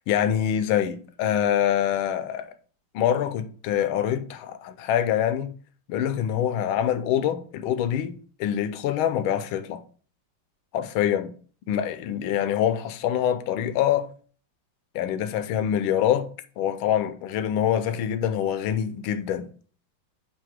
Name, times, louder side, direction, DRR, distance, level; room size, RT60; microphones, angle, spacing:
voice 1, 0.0-2.5 2.9-5.5 5.9-9.8 10.7-11.3 11.7-14.1 14.9-16.3 16.6-19.5, left 10 dB, 80° left, 1.4 m, -25 dB
7.7 x 2.7 x 4.9 m
omnidirectional pair, 2.3 m